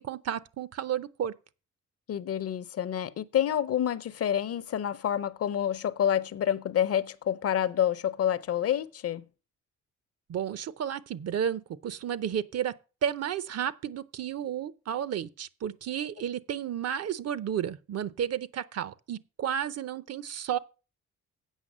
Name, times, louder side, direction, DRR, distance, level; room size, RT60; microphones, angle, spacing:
voice 1, 0.0-1.3 10.3-12.7 13.0-20.6, right 9 dB, 55° right, 0.7 m, -32 dB
voice 2, 2.1-9.2, left 10 dB, 55° left, 0.7 m, -28 dB
8.2 x 6.0 x 7.3 m
cardioid pair, 90°, 30 cm